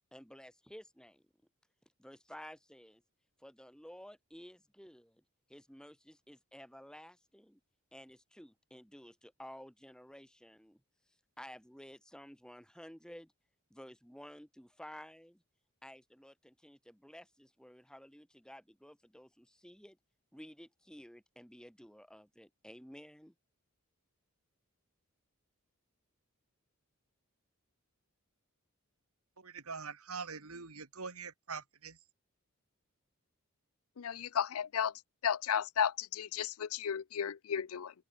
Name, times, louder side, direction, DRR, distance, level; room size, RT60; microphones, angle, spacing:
voice 1, 0.1-1.2 2.0-3.0 3.4-5.2 5.5-7.6 7.9-10.8 11.4-13.3 13.7-15.4 15.8-20.0 20.3-23.3, equal, 5° left, 4.5 m, -53 dB
voice 2, 29.4-32.0, right 5 dB, 85° right, 2.2 m, -44 dB
voice 3, 34.0-34.9 35.2-37.9, left 8 dB, 80° left, 0.5 m, -34 dB
head